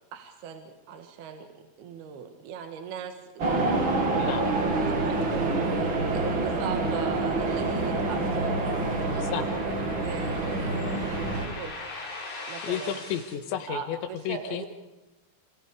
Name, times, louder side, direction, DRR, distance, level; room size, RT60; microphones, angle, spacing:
voice 1, 0.1-3.4 4.9-5.9 6.1-9.5 10.0-11.8 12.5-13.0 13.7-14.7, right 7 dB, 65° right, 5 dB, 3.3 m, -39 dB
sound 1, 3.4-11.5, right 2 dB, 35° right, 2.5 m, -27 dB
sound 2, 6.2-13.3, left 3 dB, 40° left, 5.8 m, -43 dB
voice 2, 12.6-14.0 14.3-14.7, left 9 dB, 75° left, 9 dB, 3.7 m, -32 dB
28.5 x 28.0 x 4.9 m, 1.0 s
omnidirectional pair, 5.3 m